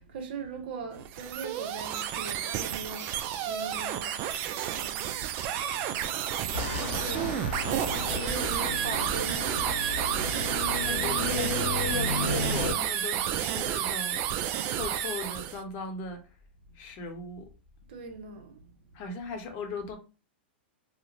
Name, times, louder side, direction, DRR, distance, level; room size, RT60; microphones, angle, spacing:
voice 1, 0.0-3.1 3.4-4.2 4.7-5.2 6.7-7.3 8.2-9.8 17.9-18.6, right 4 dB, 65° right, 0.7 m, -40 dB
sound 1, 1.0-15.6, right 10 dB, 40° right, 0.3 m, -31 dB
sound 2, 6.5-12.7, left 3 dB, 75° left, 0.6 m, -33 dB
voice 2, 10.8-11.6 11.8-14.2 14.6-16.2 16.8-17.4 18.9-20.0, left 4 dB, 45° left, 0.8 m, -37 dB
2.4 x 2.0 x 2.9 m
hypercardioid pair, 115°, 6 cm